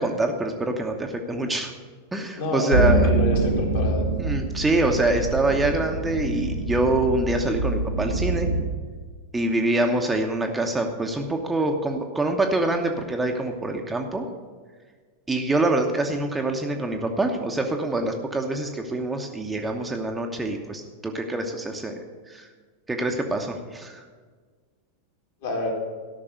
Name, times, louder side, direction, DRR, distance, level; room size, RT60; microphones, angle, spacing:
voice 1, 0.0-1.7 2.1-3.1 4.2-8.5 9.3-14.3 15.3-22.0 22.3-22.5 22.9-24.0, right 2 dB, 10° right, 3 dB, 1.0 m, -25 dB
voice 2, 2.3-4.0 25.4-25.7, left 3 dB, 55° left, -1 dB, 3.3 m, -28 dB
sound 1, 2.7-8.6, right 2 dB, 85° right, 1.3 m, -25 dB
13.5 x 5.9 x 7.9 m, 1.5 s
figure-of-eight pair, 90°, 0 cm